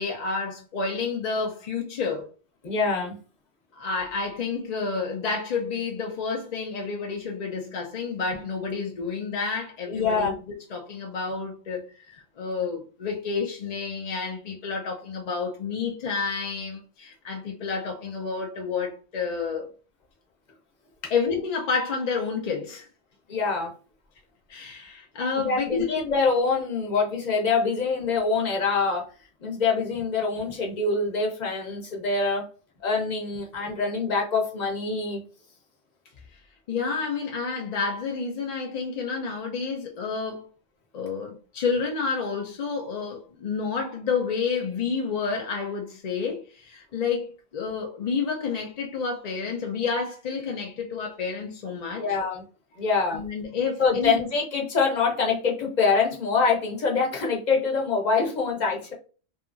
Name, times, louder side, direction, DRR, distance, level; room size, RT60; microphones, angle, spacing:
voice 1, 0.0-2.3 3.7-10.3 10.7-19.7 21.1-22.9 24.5-25.9 36.3-36.4 36.7-40.5 40.9-52.0 53.1-54.2, left 5 dB, 55° left, 0.4 m, -30 dB
voice 2, 2.6-3.1 9.9-10.3 23.3-23.7 25.4-29.0 29.4-32.5 32.8-35.2 52.0-52.4 52.8-53.2 53.8-58.9, left 4 dB, 40° left, 0.8 m, -25 dB
2.7 x 2.4 x 2.4 m
omnidirectional pair, 1.3 m